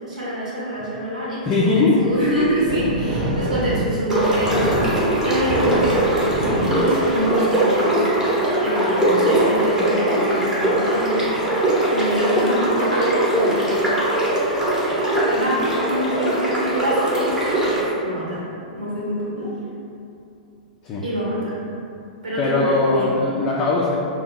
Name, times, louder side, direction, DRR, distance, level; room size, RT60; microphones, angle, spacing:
voice 1, 0.0-11.4 11.9-13.7 15.3-17.7 18.0-18.4 18.7-19.5 21.0-21.6 22.2-23.2, equal, 70° right, -7 dB, 1.1 m, -26 dB
voice 2, 1.5-2.1 20.8-21.0 22.4-23.9, left 3 dB, 25° left, -5 dB, 0.4 m, -19 dB
sound 1, 2.1-7.7, right 1 dB, 45° right, 1.0 m, -27 dB
sound 2, 4.1-17.8, right 1 dB, 10° right, 0.8 m, -21 dB
2.8 x 2.2 x 3.9 m, 2.6 s
figure-of-eight pair, 105°, 4 cm